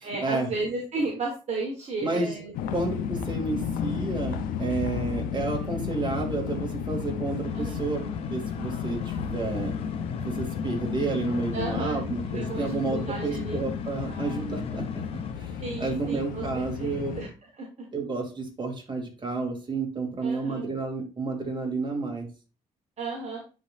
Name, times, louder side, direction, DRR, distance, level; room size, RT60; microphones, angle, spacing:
voice 1, 0.0-2.5 7.5-7.8 11.5-12.0 12.3-13.6 14.0-14.6 15.6-17.3 17.6-17.9 20.2-20.6 23.0-23.4, right 3 dB, 50° right, -1 dB, 1.6 m, -34 dB
sound 1, 2.5-17.3, left 7 dB, 85° left, 0.7 m, -33 dB
voice 2, 2.7-8.0 8.3-9.7 10.2-14.8 15.4-17.1 17.9-22.3, right 3 dB, 35° right, 0 dB, 2.7 m, -31 dB
sound 2, 7.4-15.3, left 5 dB, 40° left, 0.9 m, -38 dB
9.9 x 3.8 x 2.6 m, 0.33 s
supercardioid pair, 75°, 14 cm